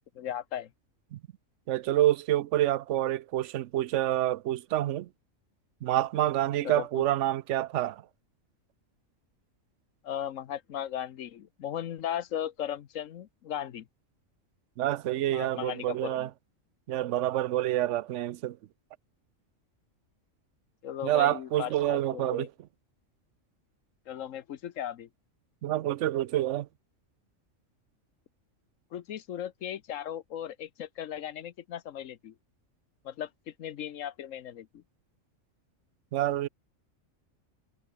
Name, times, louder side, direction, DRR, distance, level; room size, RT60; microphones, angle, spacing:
voice 1, 0.1-0.7 6.6-7.0 10.0-13.9 15.3-16.3 20.8-22.5 24.1-25.1 28.9-32.3 33.0-34.8, left 10 dB, 75° left, 1.2 m, -37 dB
voice 2, 1.7-5.1 5.8-8.0 14.8-16.3 16.9-18.6 21.0-22.5 25.6-26.7 36.1-36.5, right 13 dB, 70° right, 0.9 m, -27 dB
omnidirectional pair, 1.4 m